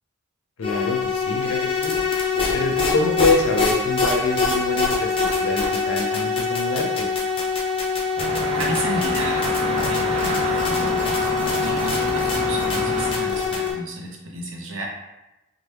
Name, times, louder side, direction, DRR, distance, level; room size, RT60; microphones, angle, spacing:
voice 1, 0.6-1.9 2.5-7.1, left 3 dB, 85° left, 2 dB, 0.5 m, -25 dB
sound 1, 0.6-13.7, left 5 dB, 25° left, 0.5 m, -24 dB
sound 2, 8.2-13.2, right 1 dB, 30° right, 0.3 m, -28 dB
voice 2, 8.5-11.2 11.6-14.9, right 1 dB, 70° right, 0 dB, 0.6 m, -32 dB
2.9 x 2.1 x 3.2 m, 0.99 s
head